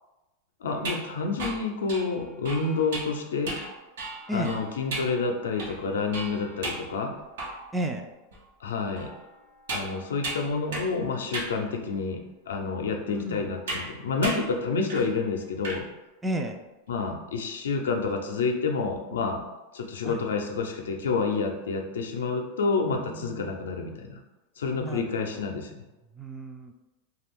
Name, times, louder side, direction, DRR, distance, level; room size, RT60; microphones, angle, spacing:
voice 1, 0.6-3.5 4.3-7.1 8.6-9.1 9.7-15.8 16.9-19.4 19.7-24.2 24.6-25.8, left 4 dB, 85° left, 3 dB, 0.4 m, -29 dB
sound 1, 0.8-7.8 8.3-8.4 9.0-11.0 11.3-11.6 12.3-12.4 13.7-13.9 14.2-14.5 14.9-15.1 15.4-15.8, right 2 dB, 80° right, 0.7 m, -36 dB
voice 2, 7.7-8.0 13.1-13.4 16.2-16.6 20.0-20.2 23.1-23.6 24.8-25.0 26.2-26.7, right 1 dB, 10° right, 3 dB, 0.3 m, -32 dB
2.4 x 2.2 x 3.5 m, 1.0 s
hypercardioid pair, 110°, 0 cm